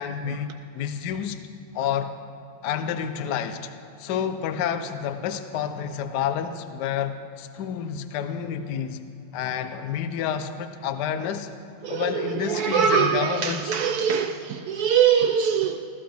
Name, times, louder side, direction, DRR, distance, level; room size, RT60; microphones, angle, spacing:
voice 1, 0.0-1.4 1.7-2.1 2.6-3.7 4.0-9.0 9.3-11.5 11.9-13.8, left 8 dB, 65° left, 9 dB, 1.2 m, -29 dB
voice 2, 11.8-15.9, right 7 dB, 80° right, 8 dB, 0.8 m, -23 dB
20.0 x 14.5 x 3.5 m, 2.7 s
omnidirectional pair, 2.2 m